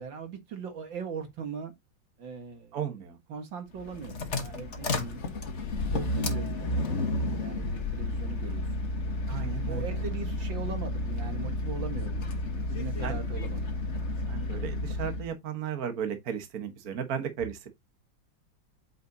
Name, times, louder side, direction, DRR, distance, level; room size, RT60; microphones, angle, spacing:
voice 1, 0.0-1.7 2.2-2.8 3.3-5.2 5.9-8.9 9.6-13.7, right 5 dB, 75° right, 2.3 m, -40 dB
voice 2, 2.7-3.2 9.3-9.8 13.0-13.4 14.3-17.7, right 8 dB, 50° right, 1.7 m, -35 dB
sound 1, 3.7-15.3, left 2 dB, 40° left, 1.5 m, -31 dB
8.7 x 5.5 x 2.8 m
omnidirectional pair, 2.1 m